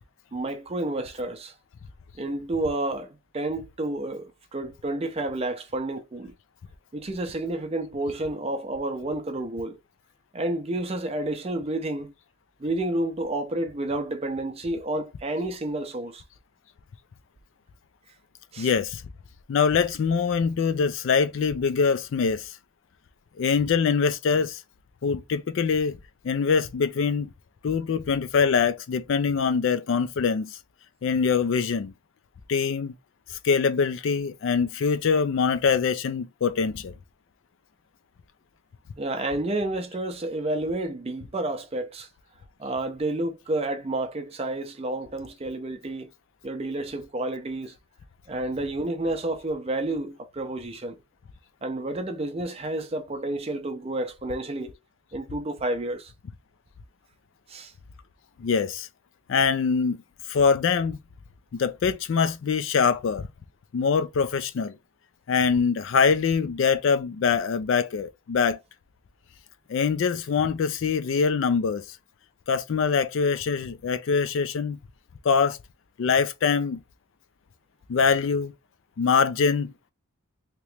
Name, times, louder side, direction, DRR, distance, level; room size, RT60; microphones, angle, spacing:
voice 1, 0.3-1.5 2.2-6.3 6.9-9.8 10.3-12.1 12.6-16.2 18.5-18.7 39.0-42.1 42.6-46.1 46.4-47.8 48.3-51.0 51.6-54.8 55.1-56.1 57.5-57.7, right 2 dB, 25° right, 0.5 m, -30 dB
voice 2, 18.6-19.0 19.5-22.6 23.4-24.6 25.0-26.0 26.2-27.3 27.6-30.6 31.0-31.9 32.5-32.9 33.3-36.9 58.4-58.9 59.3-60.0 60.3-61.0 61.5-63.3 63.7-64.8 65.3-68.6 69.7-72.0 72.5-74.8 75.2-75.6 76.0-76.8 77.9-78.5 79.0-79.7, left 5 dB, 60° left, 0.3 m, -24 dB
3.0 x 2.9 x 3.2 m
head